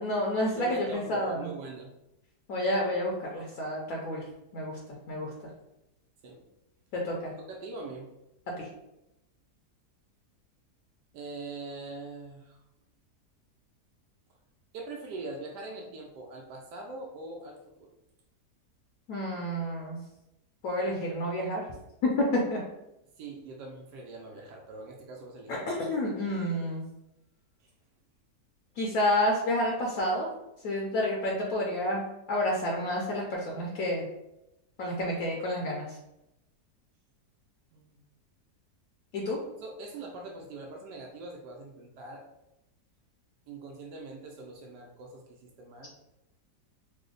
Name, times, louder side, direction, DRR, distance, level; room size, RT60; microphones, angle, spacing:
voice 1, 0.0-1.5 2.5-4.2 4.5-4.8 5.1-5.3 6.9-7.3 8.6-8.7 19.1-20.0 20.6-21.6 22.3-22.6 25.5-26.8 28.8-30.3 30.6-34.0 34.8-36.0 39.1-39.4, left 1 dB, 70° left, -2 dB, 1.0 m, -30 dB
voice 2, 0.6-1.9 6.2-6.4 7.4-8.1 11.1-12.6 14.7-17.9 23.2-25.7 27.6-27.7 37.7-38.0 39.6-42.3 43.5-46.0, right 3 dB, 85° right, 0 dB, 1.2 m, -42 dB
3.3 x 2.0 x 3.7 m, 0.89 s
omnidirectional pair, 1.8 m